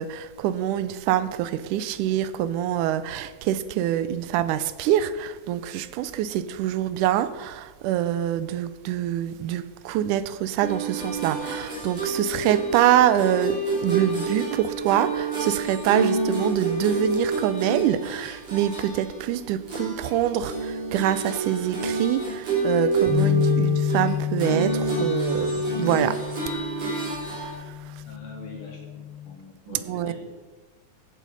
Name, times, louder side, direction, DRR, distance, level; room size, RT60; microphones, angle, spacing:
voice 1, 0.0-26.2 26.5-27.8 29.7-30.1, right 11 dB, 90° right, 2.1 m, -25 dB
sound 1, 10.6-20.2 20.4-27.5, right 3 dB, 55° right, 4.3 m, -28 dB
sound 2, 23.1-29.3, left 10 dB, 10° right, 2.0 m, -29 dB
voice 2, 28.1-30.1, left 4 dB, 85° left, 4.3 m, -43 dB
15.0 x 7.7 x 5.3 m
omnidirectional pair, 3.5 m